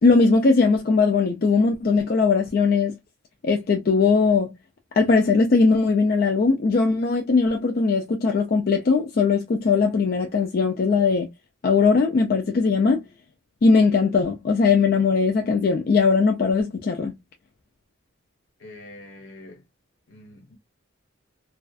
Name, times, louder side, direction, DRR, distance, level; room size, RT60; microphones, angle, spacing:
voice 1, 0.0-3.0 3.4-4.5 5.0-11.3 11.6-13.0 13.6-17.1, left 4 dB, 50° left, 0.4 m, -19 dB
voice 2, 18.6-19.6 20.1-20.6, left 1 dB, 75° left, 1.1 m, -44 dB
2.5 x 2.3 x 2.3 m
head